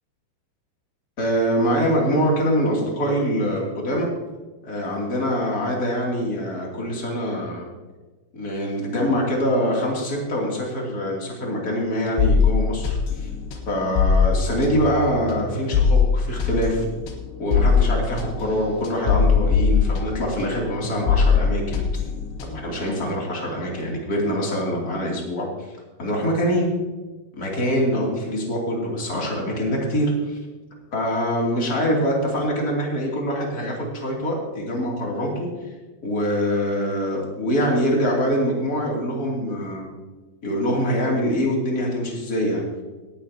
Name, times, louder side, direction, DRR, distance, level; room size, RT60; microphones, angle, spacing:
voice 1, 1.2-4.1 4.6-7.7 8.3-13.3 13.7-16.8 17.4-21.8 22.4-25.5 26.0-26.7 27.4-30.4 30.9-35.5 36.0-39.9 40.4-42.7, equal, 25° left, -2 dB, 2.5 m, -24 dB
sound 1, 12.2-20.6 20.8-22.8, left 5 dB, 85° left, 3.7 m, -21 dB
18.0 x 11.0 x 2.9 m, 1.3 s
omnidirectional pair, 5.1 m